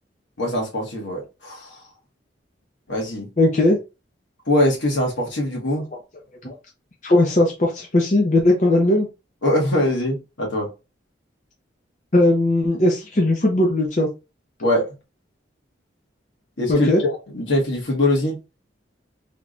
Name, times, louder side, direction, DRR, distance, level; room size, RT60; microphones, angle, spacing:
voice 1, 0.4-1.8 2.9-3.3 4.5-5.9 9.4-10.7 14.6-14.8 16.6-18.4, left 1 dB, 75° left, 1.5 m, -22 dB
voice 2, 3.4-3.8 6.4-6.5 7.0-9.1 12.1-14.1 16.7-17.0, left 1 dB, 40° left, 0.7 m, -18 dB
3.4 x 3.1 x 2.5 m
head